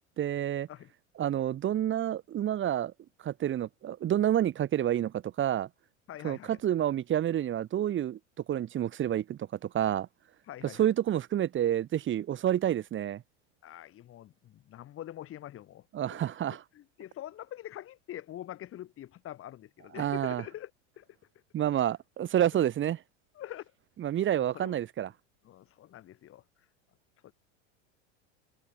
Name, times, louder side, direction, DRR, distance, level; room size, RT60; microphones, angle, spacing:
voice 1, 0.2-0.7 1.2-2.9 3.2-5.7 6.2-8.2 8.5-10.1 10.8-13.2 15.9-16.6 20.0-20.4 21.5-23.0 24.0-25.1, right 11 dB, 35° right, 2.6 m, -29 dB
voice 2, 6.1-6.6 10.5-10.9 13.6-16.2 16.7-20.7 21.0-21.1 23.3-23.7 24.5-24.7 25.4-26.4 27.2-27.3, left 12 dB, 40° left, 3.8 m, -44 dB
supercardioid pair, 110°, 35 cm